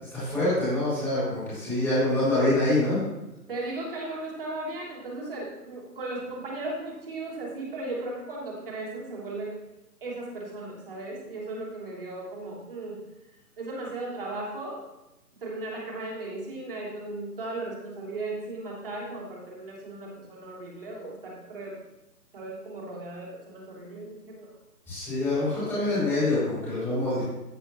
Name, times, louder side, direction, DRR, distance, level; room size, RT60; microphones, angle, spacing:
voice 1, 0.0-3.0 24.9-27.2, left 2 dB, 5° left, -11 dB, 3.7 m, -25 dB
voice 2, 3.5-9.5 10.0-13.0 13.6-14.8 15.4-21.8 22.3-24.5, right 2 dB, 35° right, -4 dB, 3.0 m, -36 dB
14.5 x 8.1 x 3.0 m, 0.96 s
figure-of-eight pair, 155°, 47 cm